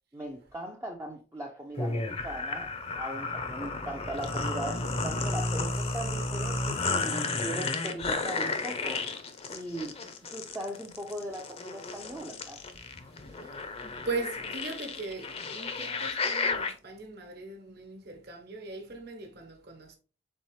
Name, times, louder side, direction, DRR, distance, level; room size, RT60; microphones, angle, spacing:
voice 1, 0.1-9.2 9.5-12.6, right 1 dB, 15° right, 0.5 m, -39 dB
sound 1, 1.8-16.7, left 3 dB, 35° left, 0.6 m, -33 dB
voice 2, 13.0-20.0, right 3 dB, 55° right, 1.2 m, -40 dB
4.2 x 4.0 x 3.1 m
head